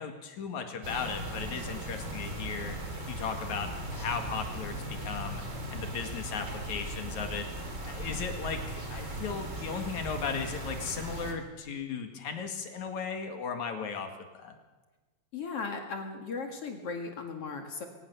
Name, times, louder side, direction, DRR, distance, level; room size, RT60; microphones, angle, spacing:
voice 1, 0.0-2.8 3.1-5.4 5.7-7.5 7.8-14.1 14.4-14.6, left 6 dB, 80° left, 5 dB, 3.4 m, -36 dB
sound 1, 0.8-11.3, right 1 dB, 25° right, 3.1 m, -38 dB
voice 2, 15.3-17.9, left 4 dB, 55° left, 3 dB, 2.8 m, -37 dB
22.0 x 19.0 x 6.9 m, 1.2 s
omnidirectional pair, 3.3 m